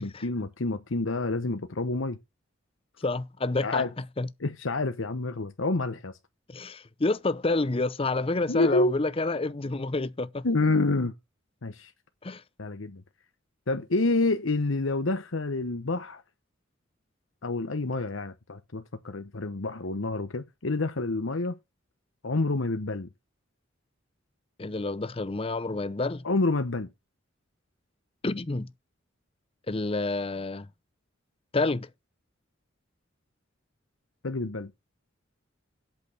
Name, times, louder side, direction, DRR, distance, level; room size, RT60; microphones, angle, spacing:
voice 1, 0.0-2.2 3.6-3.9 4.4-6.2 8.5-8.9 10.4-11.1 11.6-11.9 12.6-13.0 13.7-16.2 17.4-21.6 22.2-23.1 26.2-26.9 34.2-34.7, left 2 dB, 75° left, 1.0 m, -28 dB
voice 2, 3.0-3.9 4.2-4.3 6.5-10.4 12.2-12.4 24.6-26.2 28.2-28.7 29.7-30.7 31.5-31.9, left 3 dB, 30° left, 0.7 m, -28 dB
8.4 x 6.2 x 6.1 m
head